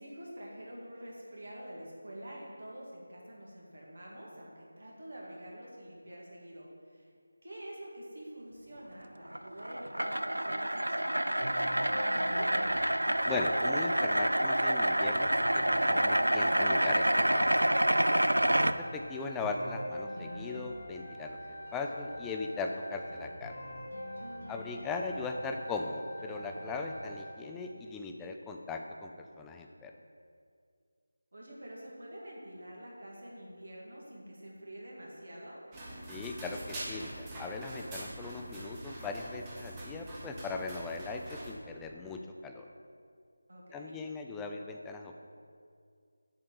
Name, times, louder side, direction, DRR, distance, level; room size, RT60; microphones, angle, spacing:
voice 1, 0.0-7.1 7.4-12.6 24.4-24.9 31.3-35.6 43.5-43.9, right 1 dB, 65° right, -3 dB, 2.0 m, -47 dB
sound 1, 9.3-18.7, right 1 dB, 85° right, 0.3 m, -28 dB
sound 2, 11.4-27.4, equal, 60° left, 1.5 m, -44 dB
voice 2, 13.2-17.5 18.5-21.4 21.7-23.5 24.5-29.9 36.1-42.7 43.7-45.2, left 3 dB, 5° left, 3 dB, 0.3 m, -39 dB
sound 3, 35.7-41.5, right 1 dB, 15° right, 1.1 m, -44 dB
7.5 x 4.4 x 6.8 m, 2.2 s
figure-of-eight pair, 165°, 0 cm